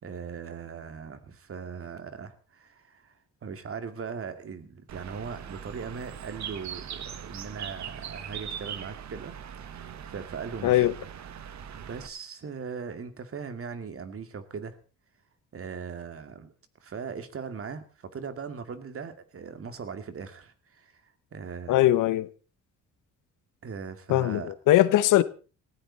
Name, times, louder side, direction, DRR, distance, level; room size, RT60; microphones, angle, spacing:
voice 1, 0.0-3.2 3.4-9.3 10.1-10.9 11.7-14.8 15.5-16.5 16.8-21.9 23.6-24.5, right 6 dB, 45° right, 2.5 m, -39 dB
Bird, 4.9-12.1, right 8 dB, 65° right, 1.6 m, -40 dB
voice 2, 10.6-10.9 21.7-22.3 24.1-25.2, left 14 dB, 85° left, 1.1 m, -21 dB
19.0 x 15.5 x 4.2 m
cardioid pair, 95°, 31 cm